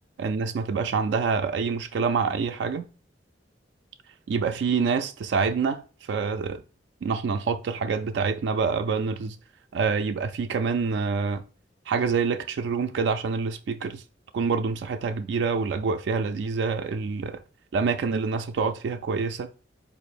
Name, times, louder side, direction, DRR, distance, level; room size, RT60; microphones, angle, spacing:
voice 1, 0.2-2.9 4.3-6.6 7.0-9.4 9.7-11.4 11.9-14.0 14.3-17.4 17.7-19.5, right 5 dB, 65° right, 0.3 m, -26 dB
4.1 x 2.6 x 4.9 m
head